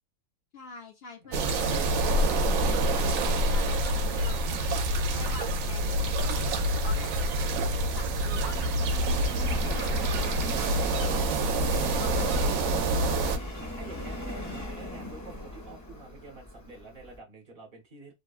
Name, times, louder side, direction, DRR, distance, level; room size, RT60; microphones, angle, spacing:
voice 1, 0.5-8.9 9.5-11.2 11.8-13.0, left 5 dB, 70° left, 0.6 m, -46 dB
voice 2, 1.2-1.7 5.0-5.3 6.9-7.1 9.0-9.1 12.9-18.1, right 2 dB, 40° right, 1.2 m, -49 dB
sound 1, 1.3-13.4, right 1 dB, 70° right, 0.9 m, -27 dB
Subway metro underground, 5.9-17.2, left 1 dB, 15° left, 0.6 m, -38 dB
2.9 x 2.2 x 2.4 m
omnidirectional pair, 1.6 m